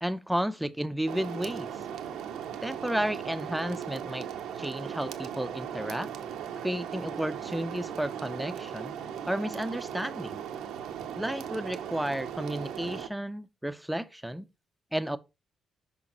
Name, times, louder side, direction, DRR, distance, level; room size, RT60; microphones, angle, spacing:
voice 1, 0.0-1.7 2.6-4.3 4.6-6.1 6.6-8.9 9.2-10.4 11.1-14.5 14.9-15.2, right 1 dB, 5° right, 0.6 m, -32 dB
sound 1, 1.1-13.1, right 8 dB, 85° right, 0.7 m, -38 dB
6.3 x 5.2 x 2.9 m
supercardioid pair, 65°, 0 cm